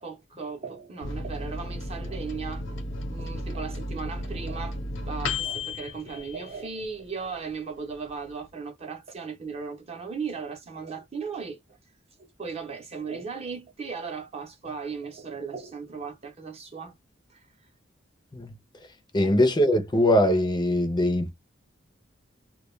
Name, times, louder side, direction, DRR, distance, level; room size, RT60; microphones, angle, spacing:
voice 1, 0.0-2.8 3.1-4.8 5.0-11.6 12.2-16.9 17.3-17.4 19.2-19.4, right 5 dB, 35° right, 0.7 m, -37 dB
Microwave oven, 1.0-7.1 7.5-7.6 7.8-8.5, left 2 dB, 80° left, 0.8 m, -34 dB
voice 2, 19.1-21.3, left 1 dB, 20° left, 0.5 m, -22 dB
2.2 x 2.2 x 3.0 m
head